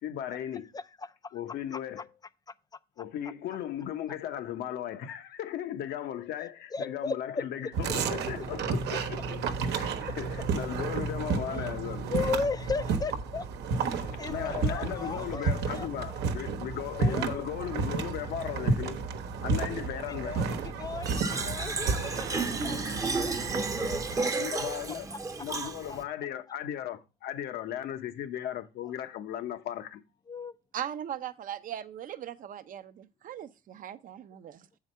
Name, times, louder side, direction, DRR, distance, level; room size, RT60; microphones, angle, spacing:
voice 1, 0.0-0.7 1.3-2.1 3.0-9.2 9.7-12.1 14.0-19.0 19.4-20.4 24.2-25.1 25.4-30.0, left 10 dB, 75° left, 1.0 m, -36 dB
voice 2, 0.7-1.4 1.7-1.8 6.7-7.2 12.1-13.5 13.9-15.9 17.0-17.4 20.1-24.3 25.1-25.2 25.9-26.0 30.3-30.5, left 4 dB, 25° left, 0.4 m, -36 dB
sound 1, 7.7-24.2, right 4 dB, 80° right, 1.1 m, -32 dB
Fill (with liquid), 21.0-26.0, right 3 dB, 20° right, 0.7 m, -32 dB
voice 3, 30.7-34.6, right 10 dB, 55° right, 0.7 m, -39 dB
7.2 x 4.9 x 5.4 m
cardioid pair, 110°, 17 cm